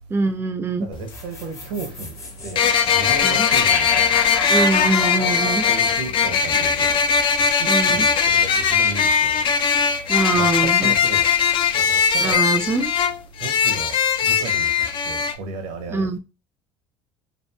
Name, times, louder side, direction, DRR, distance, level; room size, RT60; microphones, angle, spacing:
voice 1, 0.1-0.9 3.2-3.5 4.5-5.7 7.7-8.1 10.1-10.9 12.2-12.9 15.9-16.2, right 3 dB, 20° right, 0.4 m, -23 dB
voice 2, 0.8-4.2 5.7-7.1 7.6-9.4 10.3-11.3 11.8-12.5 13.4-16.2, right 3 dB, 75° right, 0.7 m, -34 dB
sound 1, 0.9-1.0 2.6-15.3, left 6 dB, 50° left, 0.4 m, -19 dB
sound 2, 1.1-7.4, left 4 dB, 25° left, 0.8 m, -31 dB
2.8 x 2.6 x 2.2 m
supercardioid pair, 85°, 11 cm